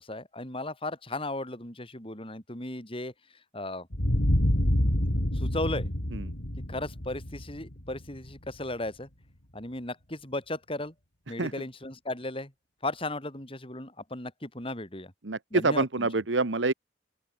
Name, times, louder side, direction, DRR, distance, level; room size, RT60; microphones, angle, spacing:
voice 1, 0.0-3.1 3.5-3.9 5.3-5.9 6.7-9.1 9.5-10.9 11.3-12.5 12.8-15.1 15.5-16.1, left 2 dB, 30° left, 6.9 m, -36 dB
sound 1, 3.9-8.5, equal, 75° left, 4.1 m, -27 dB
voice 2, 15.2-16.7, right 3 dB, 85° right, 1.3 m, -26 dB
open air
head